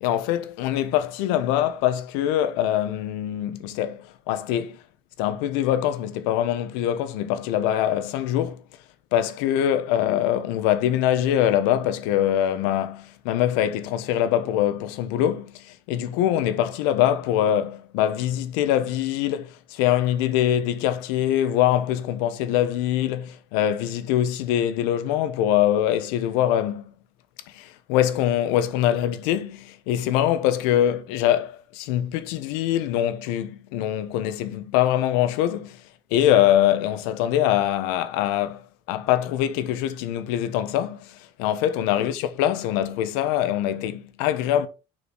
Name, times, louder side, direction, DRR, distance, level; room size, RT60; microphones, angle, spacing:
voice 1, 0.0-4.8 5.2-8.6 9.1-26.9 27.5-35.8 36.1-44.7, left 11 dB, 80° left, 1.0 m, -23 dB
6.4 x 6.3 x 3.9 m
cardioid pair, 130°, 12 cm